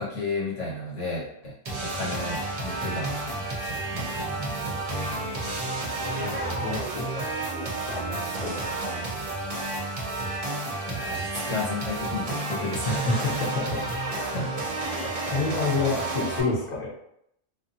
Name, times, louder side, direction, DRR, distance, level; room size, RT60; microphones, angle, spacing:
voice 1, 0.0-4.8 10.9-13.5 14.2-14.5, left 2 dB, 85° left, -7 dB, 1.5 m, -33 dB
sound 1, 1.6-16.4, right 2 dB, 45° right, 0.5 m, -31 dB
voice 2, 4.9-5.7 6.0-7.1 8.0-8.5 12.8-13.8 14.8-16.9, left 3 dB, 40° left, -5 dB, 0.9 m, -29 dB
2.5 x 2.5 x 2.6 m, 0.75 s
omnidirectional pair, 1.2 m